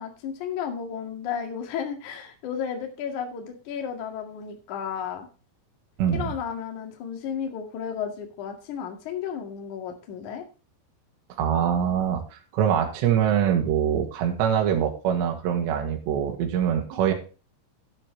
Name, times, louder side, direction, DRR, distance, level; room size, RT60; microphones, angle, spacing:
voice 1, 0.0-5.3 6.1-10.4, left 7 dB, 50° left, 3 dB, 2.6 m, -33 dB
voice 2, 6.0-6.3 11.4-17.1, right 9 dB, 65° right, 3 dB, 3.7 m, -24 dB
11.5 x 9.8 x 3.2 m, 0.33 s
omnidirectional pair, 5.9 m